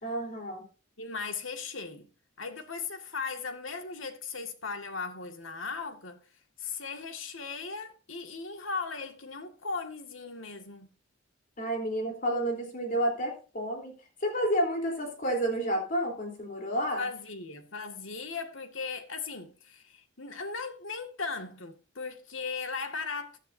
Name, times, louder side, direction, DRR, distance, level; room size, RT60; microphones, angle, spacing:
voice 1, 0.0-0.6 11.6-13.9 14.2-17.1, right 1 dB, 45° left, 3.8 m, -30 dB
voice 2, 1.0-2.1 2.4-6.2 6.6-10.9 17.0-23.4, left 4 dB, 85° left, 2.0 m, -37 dB
14.5 x 12.5 x 2.7 m
head